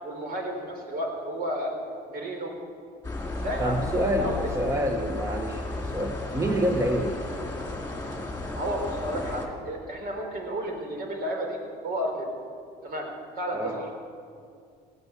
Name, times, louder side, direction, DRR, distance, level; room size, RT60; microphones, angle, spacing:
voice 1, 0.0-1.7 2.1-2.5 3.4-3.7 4.2-4.3 6.4-6.6 8.5-11.6 11.8-12.3 12.8-13.1 13.4-13.9, equal, 60° right, 2 dB, 3.8 m, -32 dB
sound 1, 3.0-9.5, left 2 dB, 15° left, 2.6 m, -34 dB
voice 2, 3.6-7.2 13.5-13.8, equal, 20° right, 4 dB, 1.1 m, -27 dB
16.5 x 10.0 x 8.2 m, 2.3 s
cardioid pair, 110°, 17 cm